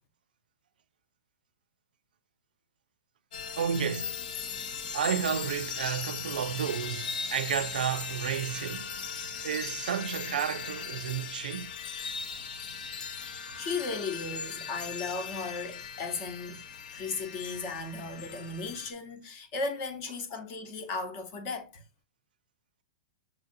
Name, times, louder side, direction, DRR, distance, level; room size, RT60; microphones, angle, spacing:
sound 1, 3.3-18.9, left 6 dB, 70° left, 0.9 m, -38 dB
voice 1, 3.5-4.2 4.9-8.9 9.4-11.7, right 9 dB, 85° right, 0.4 m, -32 dB
voice 2, 13.6-16.6 16.9-21.8, left 4 dB, 35° left, 0.9 m, -36 dB
6.2 x 2.6 x 2.6 m
hypercardioid pair, 150°, 5 cm